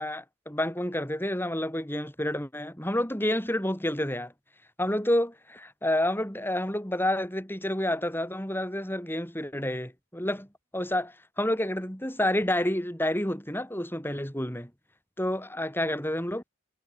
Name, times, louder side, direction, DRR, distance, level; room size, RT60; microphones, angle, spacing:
voice 1, 0.0-4.3 4.8-10.5 10.7-14.7 15.2-16.4, left 1 dB, 10° left, 5.1 m, -29 dB
head